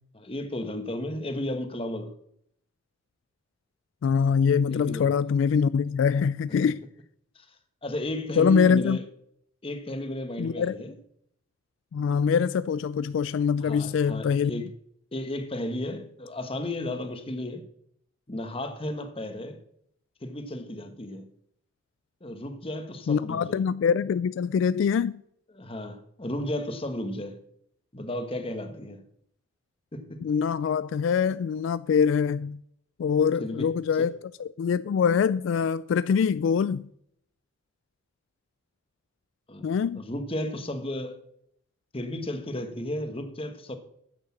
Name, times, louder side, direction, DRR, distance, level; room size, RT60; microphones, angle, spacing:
voice 1, 0.1-2.1 4.7-5.1 7.3-7.4 7.8-9.0 9.6-10.9 13.6-14.7 15.1-17.6 18.3-19.6 20.2-21.3 22.2-23.6 25.5-27.4 27.9-29.0 29.9-30.3 33.4-33.7 34.0-34.1 39.5-41.2 41.9-43.8, left 1 dB, 30° left, 1.2 m, -33 dB
voice 2, 4.0-6.8 8.4-9.0 10.4-10.8 11.9-14.6 23.1-25.2 30.2-32.6 33.0-36.9 39.6-40.0, left 6 dB, 75° left, 0.3 m, -24 dB
9.7 x 6.5 x 7.3 m
head